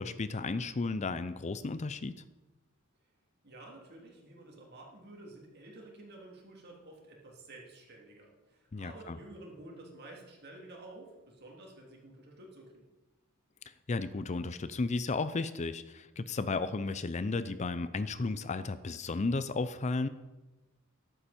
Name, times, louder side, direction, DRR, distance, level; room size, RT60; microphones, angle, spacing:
voice 1, 0.0-2.2 8.7-9.2 13.9-20.1, left 3 dB, 35° left, 13 dB, 0.5 m, -34 dB
voice 2, 3.4-12.9, right 2 dB, 50° right, -1 dB, 3.2 m, -51 dB
14.0 x 11.5 x 4.4 m, 1.1 s
head